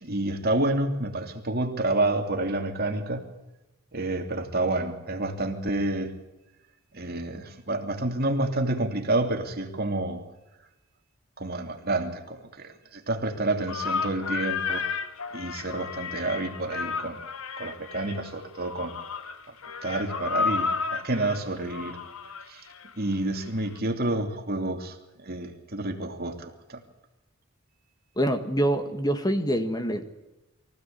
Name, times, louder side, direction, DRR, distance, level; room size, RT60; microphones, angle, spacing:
voice 1, 0.0-3.2 3.9-6.1 6.9-10.2 11.4-14.8 15.3-17.2 17.6-19.0 19.8-22.0 22.5-22.7 23.0-26.8, right 2 dB, 45° right, 4 dB, 2.9 m, -29 dB
sound 1, 13.7-23.1, left 5 dB, 75° left, 1.5 m, -32 dB
voice 2, 28.2-30.1, equal, 20° left, 8 dB, 1.7 m, -25 dB
24.0 x 16.0 x 8.7 m, 0.98 s
head